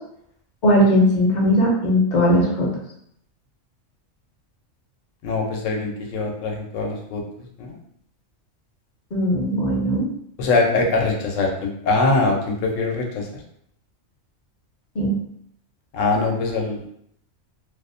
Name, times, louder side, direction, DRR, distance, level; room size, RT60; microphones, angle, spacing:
voice 1, 0.6-2.7 9.1-10.1 15.0-15.2, equal, 55° left, -2 dB, 0.6 m, -18 dB
voice 2, 5.2-7.2 7.6-7.8 10.4-13.3 15.9-16.8, left 3 dB, 90° left, 1 dB, 1.0 m, -22 dB
2.5 x 2.0 x 2.5 m, 0.71 s
omnidirectional pair, 1.3 m